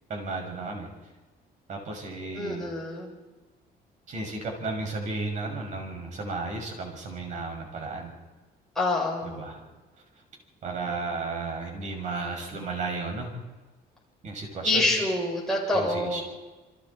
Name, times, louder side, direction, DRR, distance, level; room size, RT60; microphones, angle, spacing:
voice 1, 0.1-0.9 1.7-2.7 4.1-8.1 9.2-9.6 10.6-13.3 14.2-14.9 15.7-16.2, right 3 dB, 45° right, 2 dB, 6.2 m, -34 dB
voice 2, 2.3-3.1 8.8-9.4 14.6-16.2, left 2 dB, 5° left, -5 dB, 7.2 m, -26 dB
28.5 x 24.0 x 4.3 m, 1.2 s
cardioid pair, 160°, 17 cm